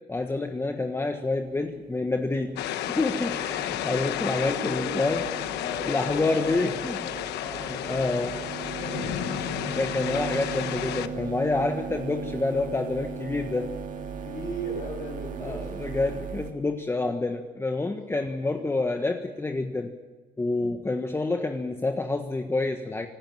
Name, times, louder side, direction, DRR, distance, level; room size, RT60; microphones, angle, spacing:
voice 1, 0.1-5.2 5.9-7.1 7.6-8.3 9.6-13.7 15.4-19.9 20.4-23.1, left 2 dB, 15° left, 5 dB, 1.4 m, -28 dB
sound 1, 1.5-16.5, right 6 dB, 50° right, 2.0 m, -38 dB
sound 2, 2.6-11.1, left 12 dB, 80° left, 1.2 m, -32 dB
voice 2, 4.4-5.3 5.6-9.8 14.2-15.7 18.1-18.2 18.5-18.7, equal, 55° left, -1 dB, 6.3 m, -38 dB
25.5 x 13.0 x 9.1 m, 1.3 s
cardioid pair, 110°, 17 cm